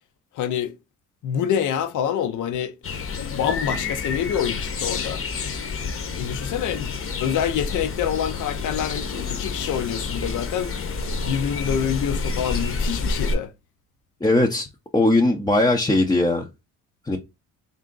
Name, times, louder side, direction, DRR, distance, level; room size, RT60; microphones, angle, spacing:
voice 1, 0.3-0.8 1.2-2.8 3.3-5.2 6.2-6.9 7.2-10.8 11.2-13.5, left 9 dB, 65° left, 0.7 m, -26 dB
sound 1, 2.8-13.4, left 4 dB, 40° left, 0.9 m, -29 dB
voice 2, 14.2-14.7 14.9-16.4 17.1-17.2, left 2 dB, 10° left, 0.6 m, -19 dB
3.5 x 2.6 x 3.7 m
cardioid pair, 90°, 33 cm